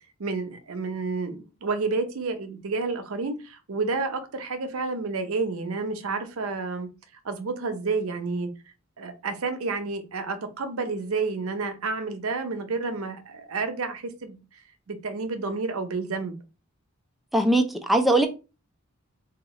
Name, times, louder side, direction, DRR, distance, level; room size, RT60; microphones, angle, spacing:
voice 1, 0.2-6.9 7.2-8.5 9.0-14.4 14.9-16.3, right 4 dB, 85° right, 0.7 m, -30 dB
voice 2, 17.3-18.3, right 1 dB, ahead, 0.4 m, -20 dB
2.8 x 2.4 x 4.0 m
head